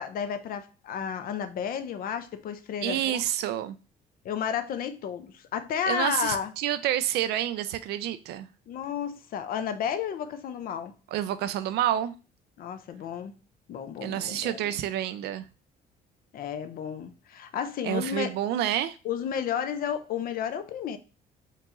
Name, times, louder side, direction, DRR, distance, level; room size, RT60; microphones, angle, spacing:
voice 1, 0.0-3.2 4.2-6.5 8.7-10.9 12.6-13.3 13.7-14.8 16.3-18.4 19.0-21.0, left 8 dB, 60° left, 0.6 m, -32 dB
voice 2, 2.8-3.8 5.9-8.5 11.1-12.1 14.0-15.5 17.8-19.0, right 11 dB, 75° right, 0.4 m, -28 dB
4.5 x 2.9 x 3.7 m
cardioid pair, 110°, 17 cm